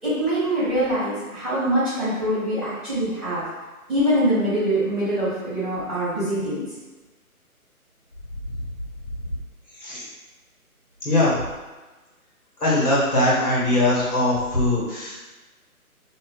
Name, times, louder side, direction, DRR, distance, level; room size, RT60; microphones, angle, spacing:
voice 1, 0.0-3.4 3.9-6.6, right 1 dB, ahead, -19 dB, 1.0 m, -23 dB
voice 2, 11.0-11.4 12.6-15.2, left 1 dB, 85° left, -7 dB, 1.3 m, -21 dB
2.6 x 2.3 x 3.3 m, 1.2 s
hypercardioid pair, 155°, 44 cm